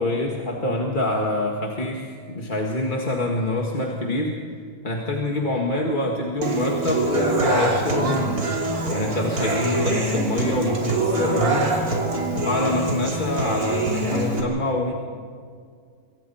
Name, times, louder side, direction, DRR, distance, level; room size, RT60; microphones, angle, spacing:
voice 1, 0.0-4.4 4.8-8.5 8.9-14.9, left 1 dB, 35° left, -1 dB, 1.9 m, -26 dB
Human voice / Acoustic guitar, 6.4-14.4, right 2 dB, 80° right, 3.5 m, -24 dB
27.0 x 24.0 x 4.3 m, 2.1 s
omnidirectional pair, 1.6 m